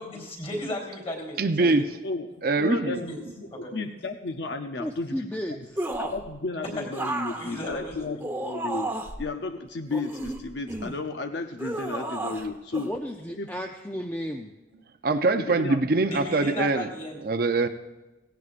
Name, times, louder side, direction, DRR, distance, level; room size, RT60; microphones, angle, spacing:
voice 1, 0.0-1.8 2.9-3.2 3.5-3.7 6.8-6.9 7.3-8.2 16.1-17.2, left 1 dB, 35° left, 1 dB, 3.5 m, -35 dB
voice 2, 1.4-1.9 2.4-3.0 15.0-16.9 17.2-17.7, right 3 dB, 55° right, 8 dB, 0.6 m, -23 dB
voice 3, 2.6-5.1 6.0-8.9 9.2-12.9 13.4-13.5 15.4-15.8, left 3 dB, 65° left, 6 dB, 0.6 m, -33 dB
voice 4, 4.8-5.8 12.8-14.5, equal, 10° left, 3 dB, 0.5 m, -33 dB
sound 1, 5.8-6.3 6.9-9.2 9.9-11.0 11.6-12.5 12.7-12.9, right 1 dB, 10° right, 1.0 m, -32 dB
17.0 x 17.0 x 2.5 m, 1.1 s
head